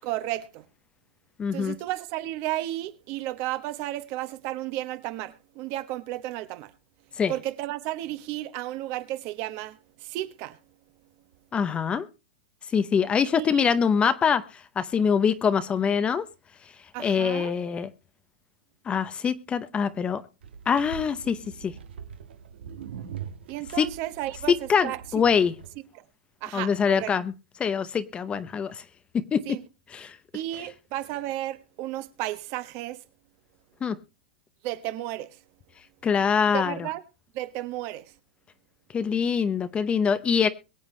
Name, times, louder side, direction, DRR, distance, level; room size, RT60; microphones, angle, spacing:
voice 1, 0.0-0.6 1.5-6.7 7.3-10.6 13.3-13.6 16.9-17.5 23.5-25.0 26.4-27.1 29.5-29.6 30.3-33.0 34.6-35.4 36.5-37.0 37.3-38.1, right 15 dB, 45° right, 1.1 m, -33 dB
voice 2, 1.4-1.7 7.2-7.3 11.5-12.1 12.7-16.3 17.0-17.9 18.9-20.2 20.7-21.7 23.8-23.9 24.5-25.5 26.5-27.3 27.6-28.8 29.1-29.4 29.9-30.2 33.8-34.0 36.0-36.8 38.9-40.5, left 6 dB, 20° left, 0.7 m, -24 dB
sound 1, 20.4-25.8, right 8 dB, 85° right, 1.5 m, -42 dB
22.5 x 8.0 x 3.2 m
supercardioid pair, 140°, 6 cm